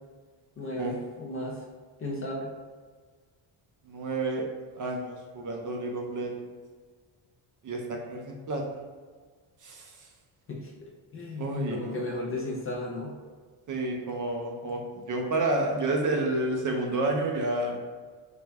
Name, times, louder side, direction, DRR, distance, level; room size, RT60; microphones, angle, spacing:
voice 1, 0.6-1.6 2.0-2.5 10.5-13.1, left 1 dB, 30° left, -2 dB, 0.4 m, -35 dB
voice 2, 3.9-4.4 4.7-6.5 7.6-8.6 9.6-10.1 11.4-12.0 13.7-17.8, right 2 dB, 40° right, 1 dB, 0.4 m, -30 dB
3.3 x 2.1 x 3.4 m, 1.5 s
cardioid pair, 140°, 50 cm